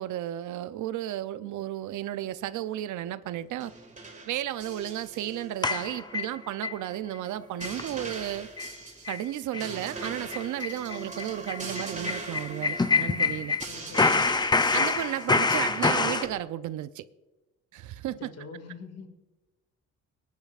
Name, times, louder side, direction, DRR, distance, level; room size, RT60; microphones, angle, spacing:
voice 1, 0.0-3.7 4.3-8.5 9.1-13.6 14.7-17.0 17.7-18.3, right 13 dB, 75° right, 0.6 m, -33 dB
sound 1, 3.4-16.4, right 2 dB, 25° right, 2.4 m, -42 dB
sound 2, 5.6-6.8 7.1-7.2 7.6-7.8 8.1-8.2 8.6-8.7 9.1-9.2 9.5-9.7 10.0-13.7 13.9-16.3, left 4 dB, 15° left, 0.5 m, -26 dB
voice 2, 13.7-14.3 18.4-19.1, left 4 dB, 55° left, 2.1 m, -43 dB
22.0 x 10.5 x 2.5 m
cardioid pair, 90°, 30 cm